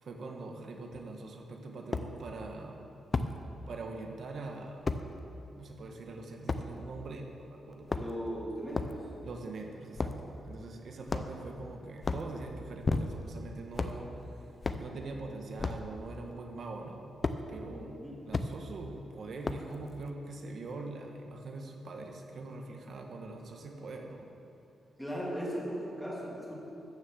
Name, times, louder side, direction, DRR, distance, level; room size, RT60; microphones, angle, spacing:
voice 1, 0.0-2.9 3.7-4.9 5.5-8.1 9.2-14.5 14.8-17.0 17.5-18.0 18.3-24.3, right 3 dB, 55° right, 2 dB, 1.4 m, -43 dB
sound 1, 0.9-1.0 1.9-2.1 3.1-3.3 4.9-5.0 6.5-6.7 7.7-8.3 8.7-9.0 10.0-10.2 11.1-11.5 12.0-12.3 12.8-13.3 13.7-14.0 14.6-14.9 15.6-15.9 17.2-17.4 18.3-18.5 19.4-19.8, left 3 dB, 30° left, 0.5 m, -32 dB
voice 2, 7.9-8.9 17.7-18.2 25.0-26.5, equal, ahead, -5 dB, 2.5 m, -38 dB
13.0 x 6.6 x 7.3 m, 2.8 s
wide cardioid pair, 155°, 0 cm